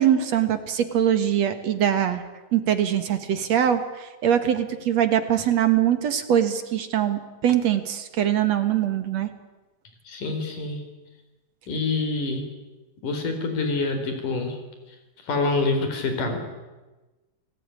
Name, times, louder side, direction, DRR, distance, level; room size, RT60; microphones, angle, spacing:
voice 1, 0.0-2.2 2.5-9.3, right 10 dB, 55° right, 10 dB, 2.3 m, -22 dB
voice 2, 10.1-10.8 11.7-12.4 13.0-14.6 14.9-16.4, left 3 dB, 60° left, 6 dB, 5.6 m, -26 dB
29.0 x 19.0 x 9.8 m, 1.1 s
omnidirectional pair, 4.2 m